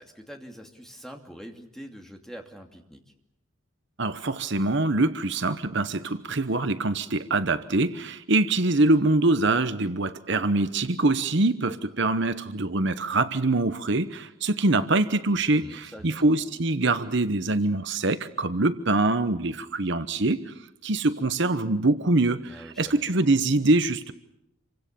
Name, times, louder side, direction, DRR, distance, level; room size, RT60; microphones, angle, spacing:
voice 1, 0.0-3.0 15.5-16.2 22.5-23.0, equal, ahead, 3 dB, 2.7 m, -44 dB
voice 2, 4.0-24.1, right 2 dB, 55° right, 11 dB, 1.0 m, -24 dB
27.5 x 24.5 x 6.9 m, 0.81 s
head